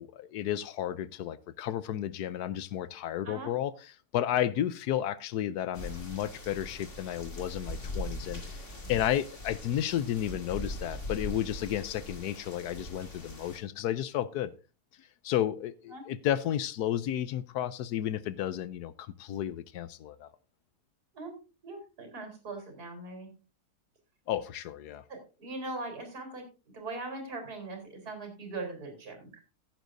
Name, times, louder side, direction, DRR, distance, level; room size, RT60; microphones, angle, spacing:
voice 1, 0.0-3.7 4.1-14.5 15.0-20.3 24.3-25.0, left 11 dB, 75° left, 1.2 m, -32 dB
sound 1, 5.7-13.6, left 1 dB, 45° left, 2.6 m, -41 dB
voice 2, 21.6-23.3 25.1-26.4 26.7-29.4, right 2 dB, 65° right, 4.6 m, -40 dB
15.5 x 9.1 x 2.6 m
omnidirectional pair, 1.7 m